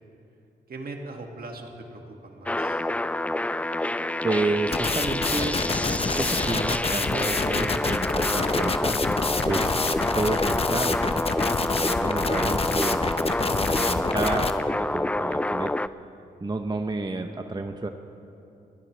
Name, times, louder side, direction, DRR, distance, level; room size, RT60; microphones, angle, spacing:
voice 1, 0.7-2.8, right 2 dB, 60° right, 2 dB, 2.0 m, -40 dB
sound 1, 2.5-15.9, left 1 dB, 10° left, 0.3 m, -27 dB
voice 2, 4.2-5.6 5.9-9.0 9.4-9.7 10.1-11.2 11.8-15.7 16.4-17.9, right 3 dB, 25° right, 5 dB, 0.8 m, -30 dB
sound 2, 4.7-14.5, left 3 dB, 35° left, 0.9 m, -27 dB
22.5 x 16.0 x 3.3 m, 2.7 s
cardioid pair, 55°, 17 cm